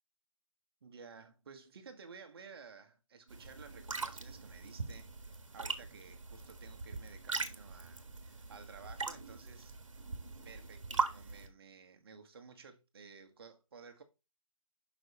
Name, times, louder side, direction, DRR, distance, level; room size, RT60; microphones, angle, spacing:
voice 1, 0.8-9.7 10.4-14.0, right 5 dB, 45° right, 1.5 m, -54 dB
sound 1, 3.3-11.5, right 4 dB, 65° right, 1.6 m, -41 dB
6.4 x 5.6 x 4.2 m
figure-of-eight pair, 155°, 17 cm